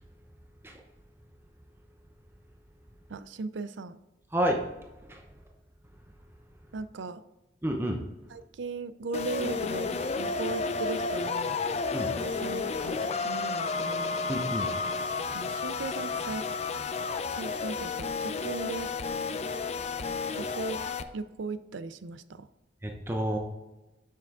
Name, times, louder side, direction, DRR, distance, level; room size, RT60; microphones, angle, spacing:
voice 1, 3.1-4.0 6.7-7.2 8.3-11.6 12.0-14.2 15.3-16.5 17.3-18.9 20.4-20.8 21.1-22.5, right 3 dB, 85° right, 14 dB, 0.5 m, -37 dB
voice 2, 4.3-4.6 5.1-5.2 7.6-8.0 11.9-12.1 14.3-14.7 22.8-23.4, equal, 15° right, 2 dB, 0.7 m, -29 dB
sound 1, 9.1-21.0, left 4 dB, 35° left, 0.4 m, -32 dB
7.3 x 5.9 x 3.6 m, 1.0 s
head